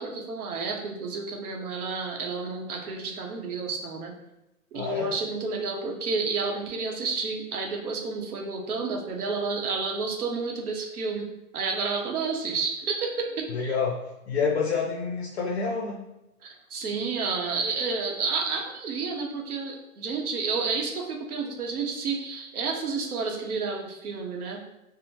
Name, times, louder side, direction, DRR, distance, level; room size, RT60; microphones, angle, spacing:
voice 1, 0.0-4.1 4.7-11.3 11.5-13.7 16.4-24.6, right 4 dB, 80° right, 2 dB, 0.8 m, -30 dB
voice 2, 4.7-5.1 13.5-14.0 14.3-16.0, left 5 dB, 50° left, -1 dB, 0.5 m, -27 dB
2.7 x 2.0 x 2.9 m, 0.92 s
hypercardioid pair, 145°, 44 cm